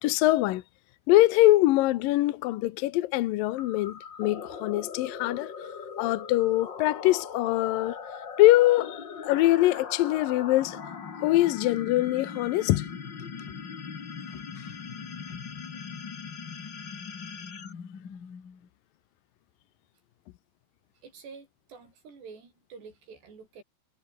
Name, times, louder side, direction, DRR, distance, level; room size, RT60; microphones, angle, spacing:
voice 1, 0.0-0.6 1.1-5.5 6.0-8.0 8.4-10.8 11.2-12.9, left 16 dB, 75° left, 2.2 m, -23 dB
sound 1, 3.6-18.7, left 6 dB, 35° left, 2.0 m, -40 dB
voice 2, 21.0-23.6, right 5 dB, 75° right, 9.0 m, -48 dB
omnidirectional pair, 4.9 m